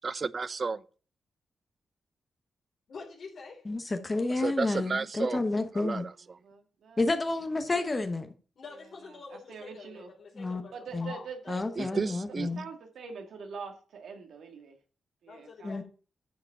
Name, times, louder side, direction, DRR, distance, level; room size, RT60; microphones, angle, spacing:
voice 1, 0.0-0.8 4.4-5.4 5.7-6.4 11.8-12.5, right 4 dB, 40° right, 0.5 m, -32 dB
voice 2, 2.9-3.6 8.6-11.3 11.6-12.0 15.3-15.8, left 4 dB, 60° left, 3.1 m, -47 dB
voice 3, 4.1-6.0 7.0-8.3 10.4-10.6 10.9-11.1 11.5-12.7 15.6-15.8, left 2 dB, 25° left, 1.1 m, -30 dB
voice 4, 6.4-7.1 9.3-10.1 10.7-11.6 11.9-12.1 12.5-14.8 15.2-15.8, right 5 dB, 85° right, 1.8 m, -44 dB
10.5 x 5.1 x 5.5 m
wide cardioid pair, 120°, 0 cm